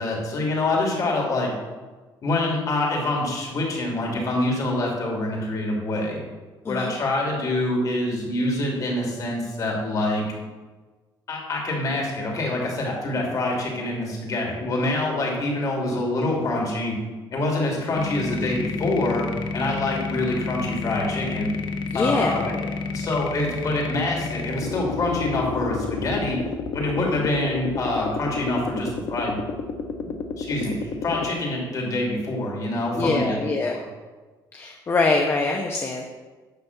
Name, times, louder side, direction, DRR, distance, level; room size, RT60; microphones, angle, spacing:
voice 1, 0.0-1.5 2.2-6.2 6.7-10.2 11.3-16.9 17.3-19.3 19.5-21.5 21.9-22.4 22.9-26.4 26.7-29.4 30.4-33.4, left 2 dB, 45° left, -1 dB, 3.1 m, -25 dB
sound 1, 17.9-31.3, left 4 dB, 75° left, 1.0 m, -30 dB
voice 2, 21.9-22.7 27.1-27.3 33.0-33.7 34.5-36.0, left 3 dB, 30° left, 2 dB, 0.9 m, -24 dB
12.0 x 4.2 x 8.1 m, 1.3 s
cardioid pair, 140°, 8 cm